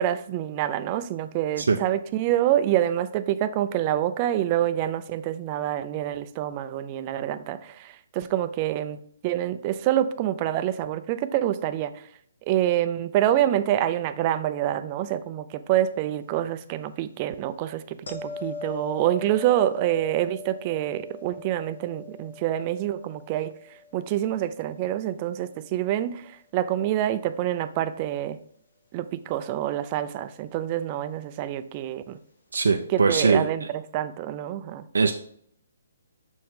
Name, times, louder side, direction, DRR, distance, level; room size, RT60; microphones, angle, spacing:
voice 1, 0.0-12.1 12.4-28.4 28.9-32.2 32.9-34.9, right 12 dB, 25° right, 0.4 m, -27 dB
sound 1, 18.1-25.1 30.3-30.5, left 4 dB, 80° left, 1.7 m, -41 dB
voice 2, 32.5-33.4 34.9-35.1, right 4 dB, 90° right, 0.5 m, -21 dB
6.2 x 4.5 x 3.6 m
hypercardioid pair, 160°, 0 cm